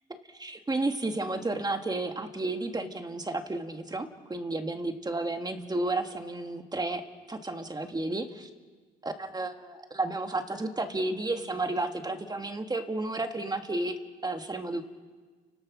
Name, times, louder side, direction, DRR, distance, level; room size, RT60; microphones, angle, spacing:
voice 1, 0.1-7.0 7.3-8.5 9.0-14.0 14.2-14.8, right 2 dB, 20° right, 6 dB, 2.1 m, -32 dB
29.5 x 17.0 x 6.3 m, 1.4 s
cardioid pair, 90°, 20 cm